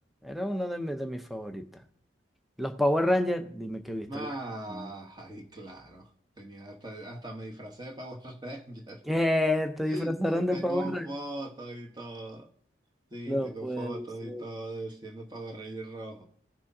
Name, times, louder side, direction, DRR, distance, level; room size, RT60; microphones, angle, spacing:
voice 1, 0.2-1.7 2.6-4.3 9.1-11.1 13.3-14.4, left 1 dB, ahead, 0.5 m, -29 dB
voice 2, 4.1-6.1 6.4-9.0 9.9-12.5 13.1-16.2, right 1 dB, 20° right, 1.1 m, -40 dB
16.0 x 6.1 x 2.7 m
head